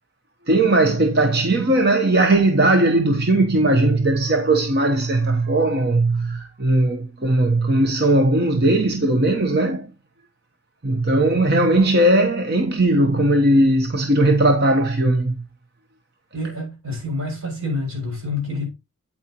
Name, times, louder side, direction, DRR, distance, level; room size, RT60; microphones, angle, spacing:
voice 1, 0.5-9.9 10.8-15.4, right 2 dB, 45° right, 1.0 m, -18 dB
voice 2, 16.3-18.7, left 2 dB, 70° right, 6.4 m, -27 dB
9.0 x 8.7 x 3.0 m
head